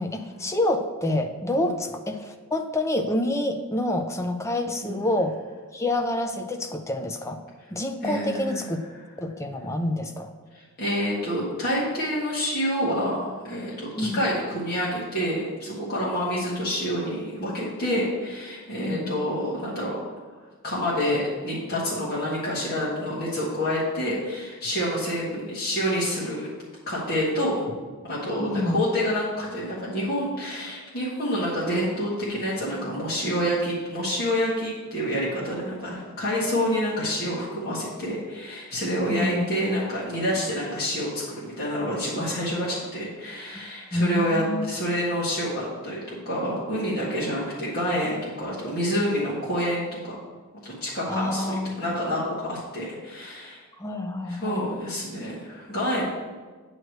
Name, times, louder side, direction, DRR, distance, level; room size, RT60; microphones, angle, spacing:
voice 1, 0.0-5.3 5.7-7.4 7.7-8.8 9.2-10.3 14.0-14.2 18.8-19.1 28.4-28.8 39.1-39.6 43.5-44.7 51.1-51.8 53.8-54.6, left 1 dB, 15° left, 5 dB, 0.5 m, -27 dB
voice 2, 8.0-8.6 10.5-20.0 20.6-26.5 26.9-27.6 28.0-50.1 50.6-53.6 54.3-56.0, equal, 45° left, -8 dB, 1.6 m, -28 dB
9.0 x 3.2 x 6.5 m, 1.4 s
head